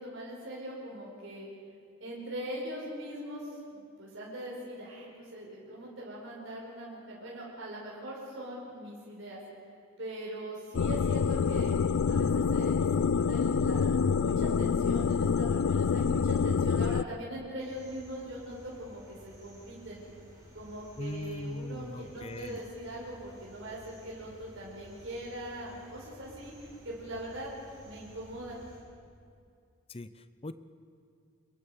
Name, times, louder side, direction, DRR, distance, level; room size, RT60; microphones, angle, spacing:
voice 1, 0.0-1.5 2.0-9.4 10.0-11.7 12.1-20.0 20.5-26.5 26.8-27.5 27.8-28.6, right 1 dB, 70° right, -4 dB, 5.3 m, -41 dB
sound 1, 10.7-17.0, left 6 dB, 85° left, 0.4 m, -27 dB
sound 2, 17.6-28.8, equal, 20° right, 5.8 m, -54 dB
voice 2, 21.0-22.6 29.9-30.5, left 2 dB, 30° left, 13 dB, 0.6 m, -40 dB
26.0 x 22.0 x 5.2 m, 2.3 s
head